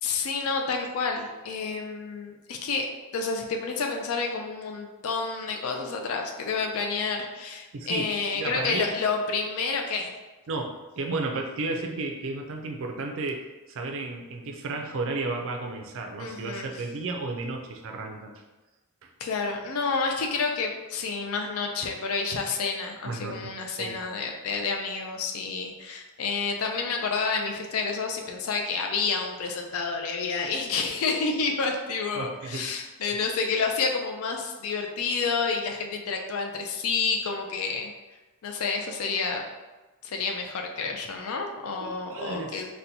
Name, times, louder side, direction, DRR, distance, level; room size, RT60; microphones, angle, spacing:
voice 1, 0.0-2.9 3.1-10.1 16.2-16.7 19.2-37.9 38.4-39.5 40.0-42.7, left 4 dB, 65° left, 2 dB, 0.4 m, -29 dB
voice 2, 7.7-8.9 10.5-18.3 19.0-19.1 23.0-23.5 23.8-24.0 32.1-32.7 41.8-42.6, right 3 dB, 60° right, 3 dB, 0.4 m, -33 dB
4.1 x 2.2 x 2.6 m, 1.2 s
head